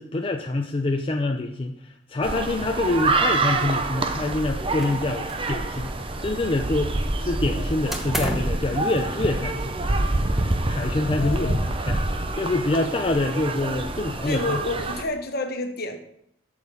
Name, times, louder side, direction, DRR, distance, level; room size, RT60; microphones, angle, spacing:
voice 1, 0.0-5.9 6.2-9.8 10.6-14.6, left 2 dB, 30° left, 3 dB, 0.6 m, -26 dB
sound 1, 2.2-15.0, right 2 dB, 30° right, 0.8 m, -27 dB
sound 2, 4.8-5.6 5.8-6.8 7.9-8.6, equal, ahead, 1.1 m, -32 dB
voice 2, 11.2-11.7 14.3-16.0, left 2 dB, 55° left, 5 dB, 1.4 m, -30 dB
8.5 x 6.4 x 7.0 m, 0.73 s
head